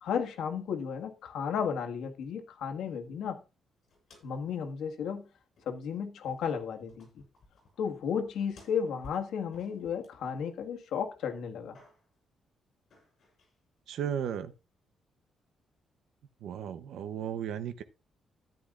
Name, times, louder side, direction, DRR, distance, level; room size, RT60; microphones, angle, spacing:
voice 1, 0.0-3.4 4.2-5.3 5.6-7.2 7.8-11.8, left 7 dB, 85° left, 1.6 m, -34 dB
sound 1, 3.8-4.5 4.8-4.9 5.6-5.9 6.2-10.9 11.3-12.2 12.9-13.6, left 3 dB, 50° left, 7.6 m, -58 dB
voice 2, 13.9-14.5 16.4-17.8, right 9 dB, 85° right, 0.7 m, -35 dB
13.5 x 10.5 x 2.5 m
cardioid pair, 165°, 0 cm